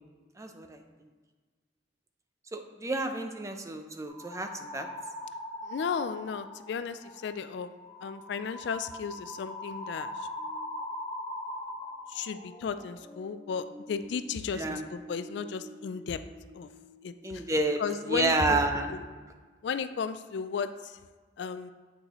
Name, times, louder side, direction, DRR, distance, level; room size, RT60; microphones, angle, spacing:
voice 1, 0.4-0.8 2.5-4.9 14.6-14.8 17.2-17.8 18.1-19.0, right 2 dB, 15° right, 6 dB, 0.5 m, -29 dB
sound 1, 4.1-6.7 7.0-7.3 7.8-18.1 18.4-19.0, left 1 dB, 10° left, 2.0 m, -43 dB
voice 2, 5.6-7.7 8.0-10.3 12.1-16.2 16.5-16.7 17.0-17.4 17.8-18.6 18.9-19.0 19.6-21.0 21.4-21.7, left 6 dB, 65° left, 11 dB, 0.3 m, -35 dB
8.1 x 6.2 x 3.0 m, 1.4 s
head